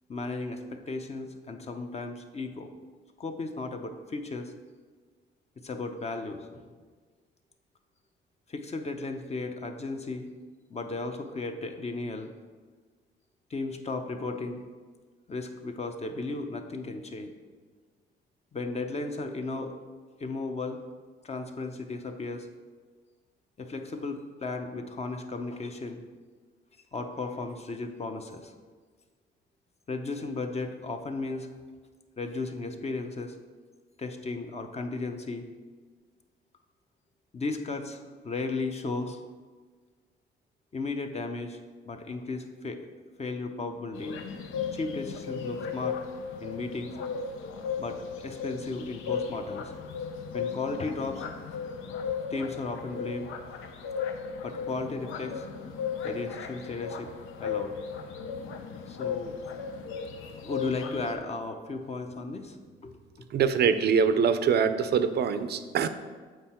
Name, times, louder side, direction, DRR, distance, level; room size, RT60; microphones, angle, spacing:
voice 1, 0.1-2.7 3.2-4.5 5.6-6.6 8.5-10.3 10.7-12.3 13.5-14.6 15.3-17.3 18.5-19.7 20.2-20.8 21.2-22.5 23.6-26.0 26.9-28.5 29.9-31.5 32.2-33.3 34.0-35.5 37.3-39.2 40.7-41.6 41.8-42.9 43.2-44.2 44.7-46.0 46.4-47.0 47.8-48.0 48.2-49.7 50.3-51.3 52.3-53.3 54.4-55.5 56.0-57.1 57.4-57.8 58.9-59.4 60.4-62.6 62.8-63.3, left 3 dB, 30° left, 6 dB, 0.7 m, -35 dB
sound 1, 43.9-61.1, left 6 dB, 85° left, 0.6 m, -36 dB
voice 2, 63.3-65.9, right 6 dB, 55° right, 11 dB, 0.5 m, -24 dB
7.7 x 4.5 x 4.4 m, 1.5 s
cardioid pair, 90°, 20 cm